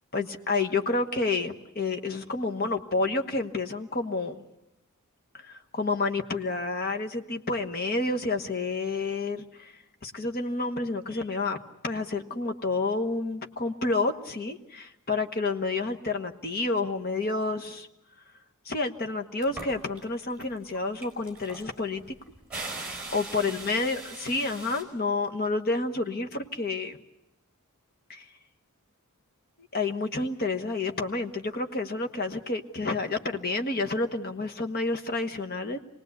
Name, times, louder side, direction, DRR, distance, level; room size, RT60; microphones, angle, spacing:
voice 1, 0.1-4.4 5.3-11.6 11.8-17.9 18.6-22.0 23.1-27.0 28.1-28.2 29.7-35.8, left 3 dB, 45° left, 6 dB, 1.2 m, -29 dB
sound 1, 19.4-20.0 20.4-24.8, right 2 dB, 5° right, 4.5 m, -40 dB
26.5 x 19.0 x 8.1 m, 0.90 s
head